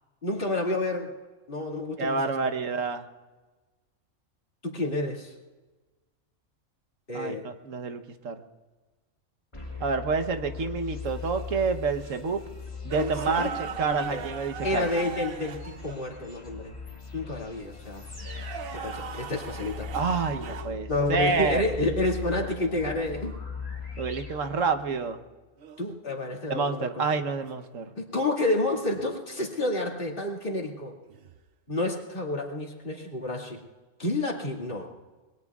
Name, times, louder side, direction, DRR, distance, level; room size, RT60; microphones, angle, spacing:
voice 1, 0.2-1.1 1.5-2.3 4.6-5.3 7.1-7.5 13.0-13.5 13.8-14.2 14.6-16.7 17.1-18.0 18.7-19.9 20.9-23.3 25.8-27.1 28.0-30.9 31.7-33.6 34.0-34.9, left 2 dB, 40° left, -1 dB, 2.6 m, -29 dB
voice 2, 2.0-3.1 7.1-8.4 9.8-12.4 12.8-15.1 19.9-21.6 24.0-25.2 26.5-27.8, right 4 dB, 75° right, 8 dB, 1.4 m, -28 dB
sound 1, 9.5-25.1, left 5 dB, 25° left, 2.9 m, -40 dB
sound 2, 12.9-16.0 18.1-20.8 23.2-23.4 25.6-26.0 28.8-29.1 31.1-31.4, right 7 dB, 55° right, 0.8 m, -38 dB
26.5 x 22.0 x 2.4 m, 1.2 s
omnidirectional pair, 1.3 m